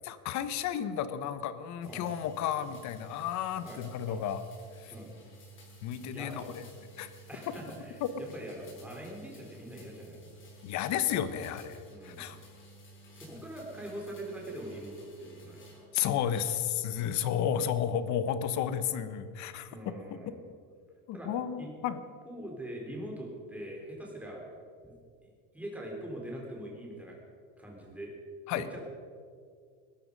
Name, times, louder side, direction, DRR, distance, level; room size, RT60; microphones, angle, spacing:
voice 1, 0.0-4.4 4.8-4.9 5.8-6.7 7.0-7.1 8.0-8.1 10.6-12.4 15.9-19.9 21.1-22.0 28.5-28.7, left 9 dB, 45° left, 12 dB, 1.1 m, -32 dB
sound 1, 1.8-15.9 16.3-16.9, right 2 dB, 30° left, 5.0 m, -53 dB
voice 2, 3.6-4.2 4.9-5.1 6.1-6.4 7.3-10.2 11.9-12.3 13.1-15.8 19.7-20.4 21.1-21.3 21.6-21.7 22.3-24.4 24.8-25.0 25.5-27.2 27.6-28.1 28.5-28.8, right 1 dB, 5° right, -2 dB, 3.9 m, -43 dB
20.0 x 13.0 x 5.3 m, 2.1 s
cardioid pair, 150°, 39 cm